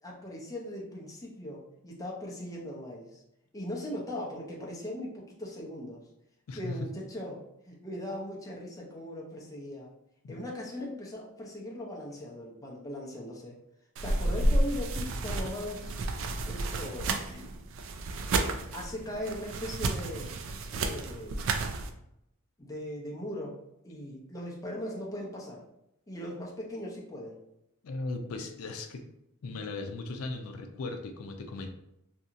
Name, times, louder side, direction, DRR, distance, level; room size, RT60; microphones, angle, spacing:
voice 1, 0.0-3.2 3.5-6.0 6.5-9.9 10.3-13.6 14.0-16.0 16.4-17.5 18.7-20.3 20.7-21.5 22.6-25.6 26.1-27.4, left 1 dB, 15° left, -2 dB, 0.5 m, -39 dB
sound 1, 14.0-21.9, right 2 dB, 65° right, 0.3 m, -31 dB
voice 2, 27.8-29.0 29.4-31.7, left 3 dB, 85° left, 6 dB, 0.4 m, -37 dB
2.8 x 2.7 x 2.4 m, 0.81 s
head